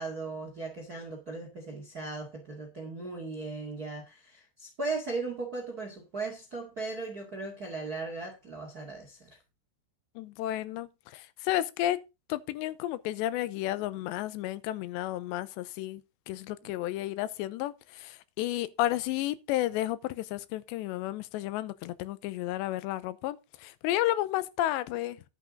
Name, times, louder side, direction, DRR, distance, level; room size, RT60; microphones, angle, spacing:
voice 1, 0.0-9.4 16.6-16.8, right 3 dB, 40° right, 1.3 m, -37 dB
voice 2, 10.2-12.0 12.3-25.2, left 14 dB, 90° left, 2.9 m, -32 dB
11.0 x 8.2 x 3.7 m
omnidirectional pair, 5.0 m